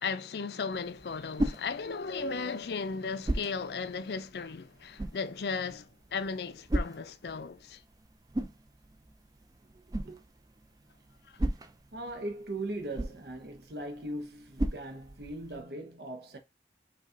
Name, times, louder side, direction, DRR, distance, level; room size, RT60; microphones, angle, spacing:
voice 1, 0.0-7.8, left 5 dB, 65° left, 0.5 m, -36 dB
sound 1, 0.7-15.6, right 1 dB, 20° right, 0.4 m, -38 dB
voice 2, 9.7-10.2 11.9-16.4, right 1 dB, 65° right, 0.8 m, -39 dB
5.3 x 2.4 x 3.8 m
head